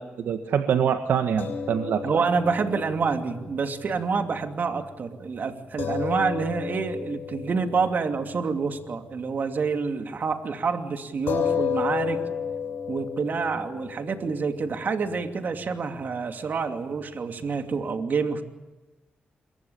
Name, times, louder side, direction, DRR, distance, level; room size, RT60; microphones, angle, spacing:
voice 1, 0.0-2.2, right 8 dB, 85° right, 7 dB, 1.7 m, -25 dB
sound 1, 1.4-9.9 10.2-10.4 11.3-17.8, left 7 dB, 80° left, 6.9 m, -34 dB
voice 2, 2.0-12.2 12.9-18.4, right 5 dB, 60° right, 6 dB, 2.6 m, -27 dB
27.5 x 23.5 x 7.1 m, 1.1 s
cardioid pair, 75°, 4 cm